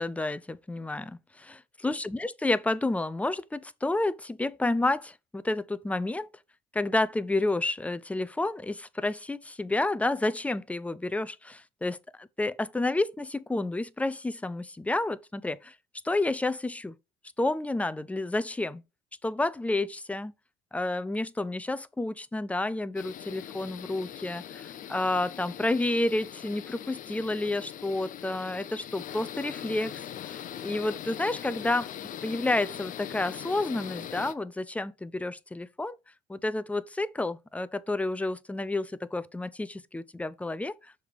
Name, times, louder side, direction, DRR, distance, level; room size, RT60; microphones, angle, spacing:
voice 1, 0.0-6.3 6.7-15.7 16.0-16.9 17.4-18.8 19.2-20.3 20.7-30.4 30.6-31.9 32.2-36.0 36.3-40.9, left 2 dB, 10° left, 0.4 m, -30 dB
sound 1, 23.0-34.3, left 10 dB, 50° left, 0.6 m, -41 dB
6.6 x 3.4 x 4.7 m
cardioid pair, 110°, 17 cm